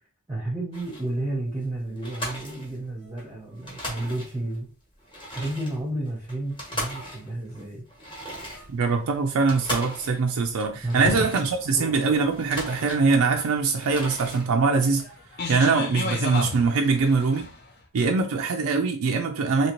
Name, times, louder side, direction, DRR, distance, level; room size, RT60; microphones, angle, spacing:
voice 1, 0.3-4.7 5.3-7.8 10.8-11.5 11.7-12.0, right 1 dB, 15° right, 0.7 m, -31 dB
sound 1, 0.7-1.2 1.6-1.7 2.0-3.3 3.5-4.6 5.0-11.8 12.2-13.4 13.7-14.5, equal, 25° left, 1.1 m, -38 dB
Fireworks, 8.4-14.1, left 3 dB, 90° left, 0.6 m, -39 dB
voice 2, 8.7-15.1 15.5-17.5 17.9-19.7, right 4 dB, 80° right, 0.4 m, -23 dB
sound 2, 12.7-17.7, left 3 dB, 50° left, 0.7 m, -34 dB
2.8 x 2.8 x 2.9 m
head